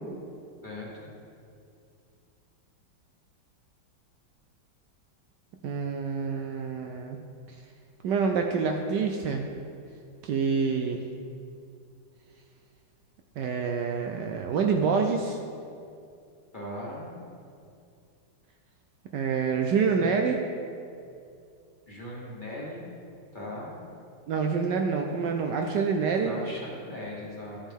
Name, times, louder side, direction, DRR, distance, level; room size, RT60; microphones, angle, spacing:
voice 1, 0.6-1.1 16.5-17.1 21.9-22.8 23.3-23.7 26.2-27.6, equal, 25° left, -5 dB, 1.5 m, -39 dB
voice 2, 5.6-7.2 8.0-9.4 10.2-11.0 13.4-15.4 19.1-20.4 24.3-26.3, right 5 dB, 70° right, 3 dB, 1.1 m, -27 dB
13.0 x 7.2 x 3.5 m, 2.4 s
omnidirectional pair, 2.1 m